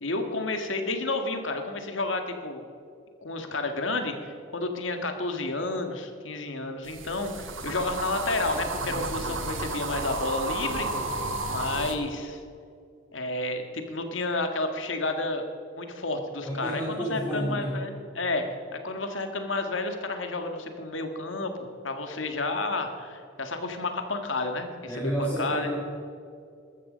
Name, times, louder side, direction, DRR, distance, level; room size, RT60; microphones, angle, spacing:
voice 1, 0.0-2.6 3.2-10.9 11.4-12.4 13.1-15.5 15.8-18.4 18.7-25.7, left 2 dB, 75° left, 6 dB, 1.7 m, -31 dB
sound 1, 6.9-12.0, right 2 dB, 80° right, 1.7 m, -32 dB
voice 2, 16.4-17.8 24.9-25.8, right 1 dB, 10° left, -8 dB, 2.7 m, -30 dB
14.0 x 13.5 x 5.2 m, 2.4 s
head